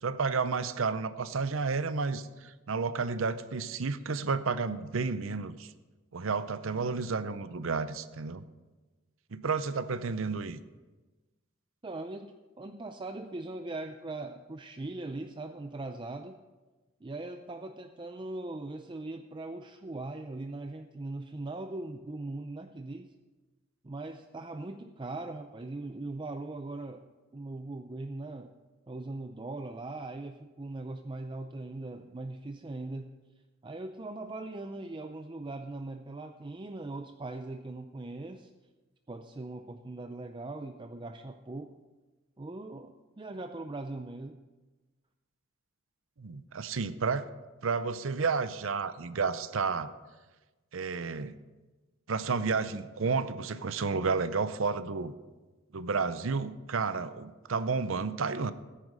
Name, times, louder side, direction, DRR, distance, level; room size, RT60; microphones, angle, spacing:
voice 1, 0.0-5.7 6.1-8.4 9.3-10.6 46.2-47.3 47.6-49.9 50.7-51.4 52.1-55.1 55.7-58.5, right 4 dB, 65° right, 14 dB, 0.6 m, -31 dB
voice 2, 11.8-16.4 17.0-23.1 23.8-27.1 27.3-28.5 28.9-33.1 33.6-38.5 39.1-41.8 42.4-44.4, right 2 dB, 25° right, 6 dB, 0.5 m, -40 dB
13.5 x 10.0 x 5.4 m, 1.2 s
head